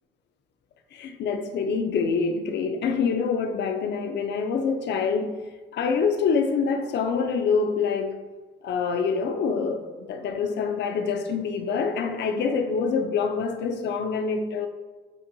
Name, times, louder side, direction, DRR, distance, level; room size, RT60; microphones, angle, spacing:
voice 1, 0.9-5.4 5.7-8.2 8.6-14.7, left 5 dB, 60° left, 0.5 m, -26 dB
5.5 x 2.2 x 2.6 m
cardioid pair, 90°, 20 cm